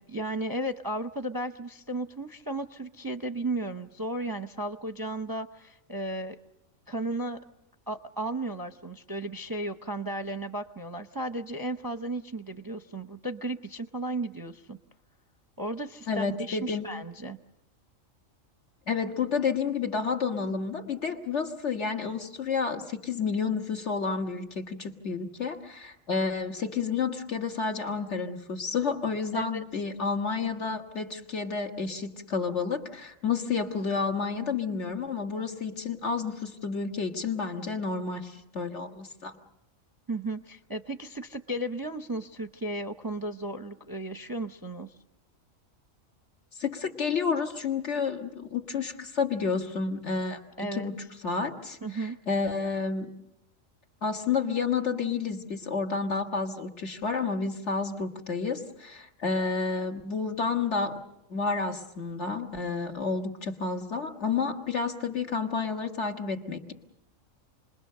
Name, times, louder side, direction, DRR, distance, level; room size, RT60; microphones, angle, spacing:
voice 1, 0.0-6.4 6.9-7.4 7.9-14.8 15.6-17.4 29.3-29.6 40.1-44.9 50.6-50.9 51.8-52.2, right 1 dB, 20° right, 7 dB, 0.7 m, -34 dB
voice 2, 16.1-16.9 18.9-39.4 46.6-50.4 50.7-50.9 51.2-53.1 54.0-61.0 61.3-66.7, left 5 dB, 60° left, 3 dB, 2.0 m, -30 dB
29.0 x 21.5 x 6.7 m, 0.88 s
omnidirectional pair, 1.4 m